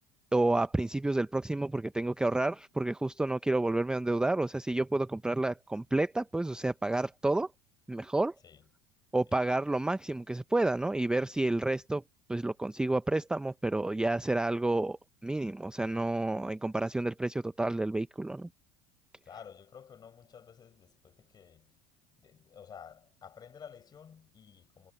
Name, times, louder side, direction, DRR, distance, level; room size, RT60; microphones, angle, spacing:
voice 1, 0.3-7.5 7.9-8.3 9.1-12.0 12.3-18.5, right 2 dB, 5° right, 0.6 m, -30 dB
voice 2, 19.2-21.8 22.1-24.9, left 7 dB, 30° left, 4.8 m, -52 dB
supercardioid pair, 115°, 14 cm